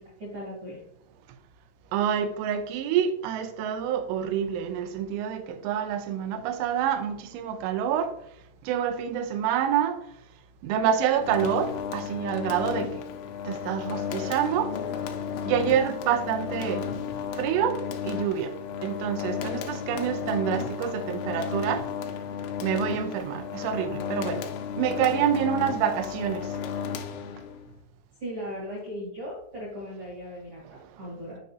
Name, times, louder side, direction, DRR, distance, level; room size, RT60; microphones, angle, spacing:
voice 1, 0.2-0.8 28.2-31.4, equal, 65° right, 1.4 m, -37 dB
voice 2, 1.9-8.1 8.6-10.0 10.6-13.0 13.4-14.8 15.4-16.9 17.3-18.5 18.8-21.9 22.6-24.5 24.8-26.6, right 9 dB, 90° right, 3.1 m, -27 dB
sound 1, 11.2-27.7, left 7 dB, 90° left, 3.1 m, -33 dB
7.4 x 5.4 x 2.8 m
omnidirectional pair, 5.5 m